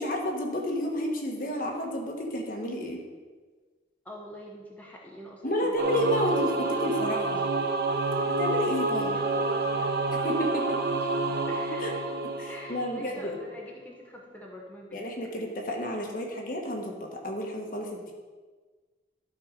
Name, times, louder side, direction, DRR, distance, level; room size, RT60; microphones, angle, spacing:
voice 1, 0.0-3.0 5.4-7.4 8.2-9.2 10.1-10.6 11.8-11.9 12.4-13.4 14.9-18.1, equal, 50° left, 1 dB, 1.3 m, -31 dB
voice 2, 4.0-7.2 7.4-7.5 9.1-12.0 12.5-15.2, equal, 10° left, -3 dB, 1.0 m, -45 dB
Singing / Musical instrument, 5.8-13.3, right 3 dB, 60° right, 0.7 m, -28 dB
12.5 x 4.4 x 5.1 m, 1.4 s
head